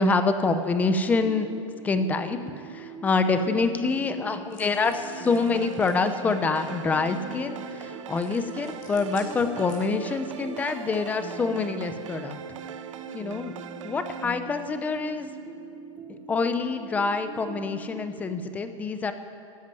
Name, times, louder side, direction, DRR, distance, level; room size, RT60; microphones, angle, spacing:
voice 1, 0.0-1.5 1.8-12.4 13.1-13.5 13.8-15.3 16.3-19.1, left 4 dB, 10° left, 9 dB, 0.6 m, -26 dB
sound 1, 0.8-18.3, right 4 dB, 10° right, 1.1 m, -42 dB
sound 2, 4.5-6.0 8.1-10.2, left 5 dB, 90° left, 4.8 m, -52 dB
sound 3, 5.1-14.3, right 8 dB, 70° right, 1.0 m, -41 dB
13.0 x 11.5 x 9.0 m, 2.5 s
supercardioid pair, 165°, 17 cm